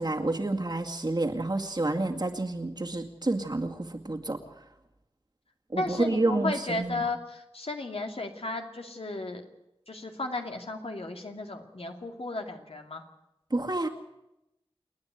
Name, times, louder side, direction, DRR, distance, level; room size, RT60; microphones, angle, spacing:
voice 1, 0.0-4.4 5.7-7.0 13.5-13.9, right 2 dB, 45° right, 3 dB, 2.2 m, -29 dB
voice 2, 5.8-9.4 9.9-13.1, left 2 dB, 80° left, 4 dB, 2.4 m, -34 dB
29.0 x 9.7 x 9.3 m, 0.89 s
wide cardioid pair, 60°, 10 cm